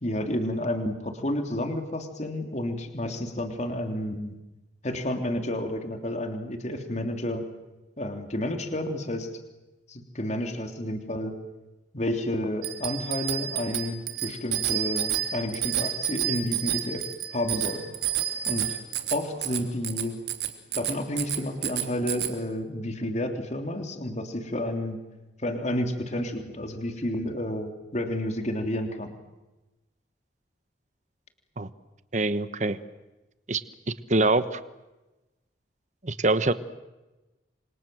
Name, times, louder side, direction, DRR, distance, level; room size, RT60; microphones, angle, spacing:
voice 1, 0.0-4.3 4.8-7.4 8.0-9.3 9.9-11.4 11.9-17.0 17.3-17.9 18.5-18.8 19.1-20.2 20.7-25.0 25.4-29.1, left 1 dB, 40° left, 5 dB, 3.3 m, -30 dB
Bicycle bell, 12.6-22.3, right 11 dB, 65° right, 2.9 m, -30 dB
voice 2, 32.1-32.8 33.5-33.6 33.9-34.6 36.0-36.5, right 2 dB, 40° right, 13 dB, 1.2 m, -24 dB
29.0 x 25.5 x 7.8 m, 1.1 s
head